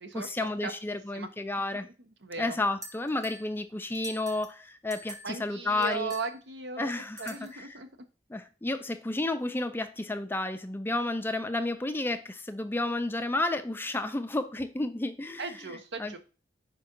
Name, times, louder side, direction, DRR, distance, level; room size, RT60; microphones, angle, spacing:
voice 1, 0.1-1.9 2.4-6.1 6.8-7.7 8.3-15.5 16.0-16.2, left 2 dB, 10° left, 0.4 m, -31 dB
voice 2, 2.2-2.6 5.2-6.9 7.2-7.9 15.4-16.2, right 4 dB, 80° right, 1.0 m, -37 dB
sound 1, 2.8-3.5 3.9-4.6 4.9-5.4 5.8-6.3 7.2-7.7, right 2 dB, 20° right, 1.0 m, -45 dB
5.1 x 4.8 x 4.5 m
head